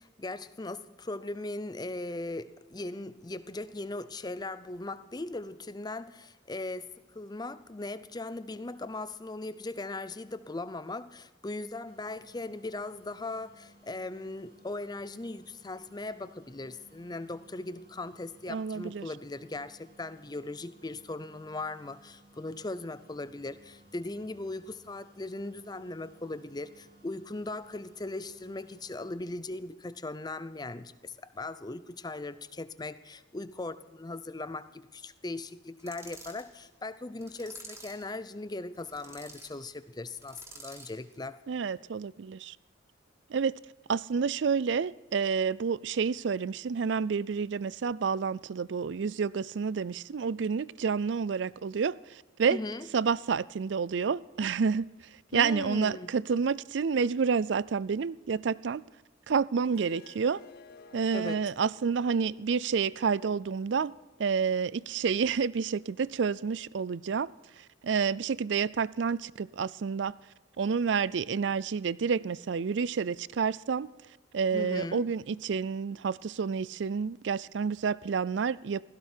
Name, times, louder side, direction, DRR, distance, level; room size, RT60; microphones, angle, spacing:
voice 1, 0.0-41.4 52.5-52.9 55.3-56.1 61.1-61.4 74.5-75.1, left 2 dB, 20° left, 0.6 m, -39 dB
sound 1, 11.8-29.1, right 1 dB, 50° right, 2.5 m, -60 dB
voice 2, 18.5-19.1 41.5-42.6 43.3-43.5 43.9-52.6 52.9-58.8 59.3-60.4 60.9-63.9 64.2-67.3 67.6-70.2 70.6-73.9 74.3-78.8, right 6 dB, 65° right, 0.4 m, -29 dB
sound 2, 35.8-36.5 37.2-38.1 38.7-39.5 40.2-41.0, right 2 dB, 15° right, 3.1 m, -49 dB
Harp, 59.7-64.8, left 4 dB, 55° left, 0.9 m, -57 dB
17.0 x 15.5 x 4.5 m
head